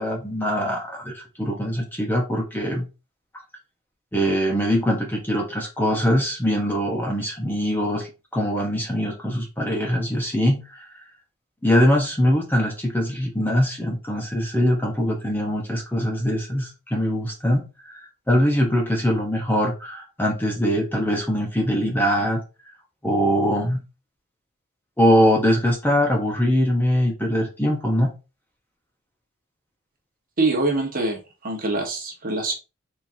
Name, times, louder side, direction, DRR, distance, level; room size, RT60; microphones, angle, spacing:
voice 1, 0.0-2.9 4.1-8.1 8.3-10.8 11.6-22.4 23.0-23.8 25.0-28.1, equal, 10° left, 0 dB, 0.9 m, -22 dB
voice 2, 30.4-32.5, right 2 dB, 40° right, 1 dB, 1.2 m, -24 dB
4.4 x 3.6 x 2.8 m, 0.29 s
head